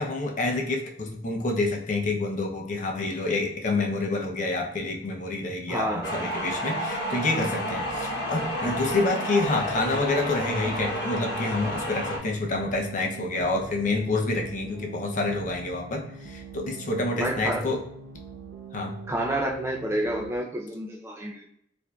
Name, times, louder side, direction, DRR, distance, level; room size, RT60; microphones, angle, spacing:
voice 1, 0.0-17.8 18.7-19.0, left 2 dB, 40° left, 1 dB, 0.5 m, -28 dB
voice 2, 5.7-6.2 17.1-17.7 19.1-21.5, right 1 dB, 15° right, 0 dB, 0.4 m, -29 dB
sound 1, 6.0-12.2, equal, 60° left, 0.9 m, -30 dB
sound 2, 6.7-20.3, right 5 dB, 70° right, 0.5 m, -44 dB
4.6 x 2.6 x 2.2 m, 0.70 s
head